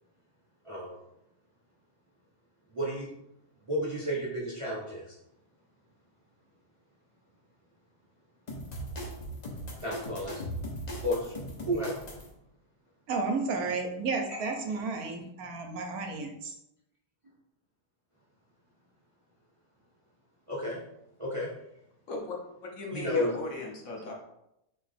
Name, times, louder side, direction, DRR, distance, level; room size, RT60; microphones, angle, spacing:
voice 1, 0.6-1.0 2.7-3.1 3.7-5.1 9.8-10.4 11.0-12.0 14.3-14.5 20.5-20.8 21.2-21.5 22.9-23.4, equal, 30° right, -4 dB, 0.7 m, -32 dB
sound 1, 8.5-12.3, equal, 40° left, 0.6 m, -39 dB
voice 2, 13.1-16.5, right 4 dB, 70° right, 3 dB, 1.2 m, -32 dB
voice 3, 22.7-24.1, left 2 dB, 60° left, -1 dB, 1.3 m, -37 dB
4.3 x 2.9 x 4.1 m, 0.83 s
omnidirectional pair, 1.6 m